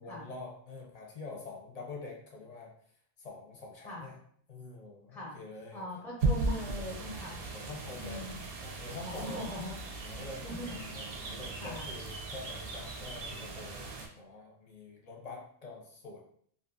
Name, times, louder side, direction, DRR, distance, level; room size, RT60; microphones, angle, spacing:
voice 1, 0.0-2.7 3.2-4.2 4.5-5.9 7.5-8.3 8.6-9.5 10.0-16.2, left 3 dB, 45° left, -1 dB, 0.6 m, -46 dB
voice 2, 5.7-7.4 8.0-8.4 9.0-9.7 10.4-10.8 11.0-11.3 11.6-11.9, left 1 dB, ahead, -3 dB, 0.5 m, -41 dB
sound 1, 6.2-14.1, right 3 dB, 65° right, 0.7 m, -37 dB
2.6 x 2.4 x 2.5 m, 0.62 s
omnidirectional pair, 1.1 m